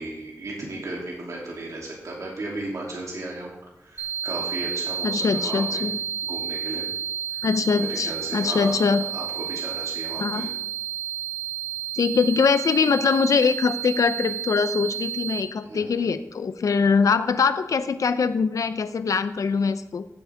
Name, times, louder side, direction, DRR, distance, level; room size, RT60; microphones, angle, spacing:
voice 1, 0.0-3.5 3.8-5.9 6.2-6.9 7.8-10.5 15.2-15.3 15.6-16.1, right 2 dB, 70° right, -3 dB, 2.8 m, -35 dB
sound 1, 4.0-15.4, right 9 dB, 35° right, 2.3 m, -31 dB
voice 2, 5.0-5.9 7.4-9.0 10.2-10.5 11.9-20.1, left 5 dB, 75° left, 12 dB, 0.6 m, -22 dB
15.5 x 8.1 x 3.5 m, 0.95 s
wide cardioid pair, 115°, 6 cm